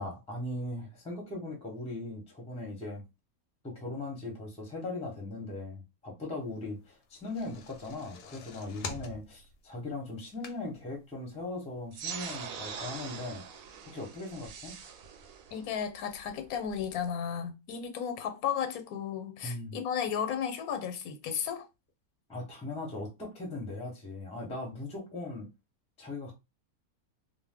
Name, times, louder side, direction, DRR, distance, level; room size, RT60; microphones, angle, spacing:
voice 1, 0.0-3.0 3.6-13.4 13.9-14.8 19.4-19.8 22.3-25.5 26.0-26.3, left 2 dB, 5° left, 0.5 m, -39 dB
sound 1, 7.0-11.0 11.4-11.5 11.8-11.9, left 4 dB, 65° left, 0.7 m, -44 dB
sound 2, 11.9-16.9, right 6 dB, 70° right, 0.9 m, -43 dB
voice 2, 15.5-21.6, left 8 dB, 85° left, 1.1 m, -34 dB
2.5 x 2.1 x 3.4 m
omnidirectional pair, 1.5 m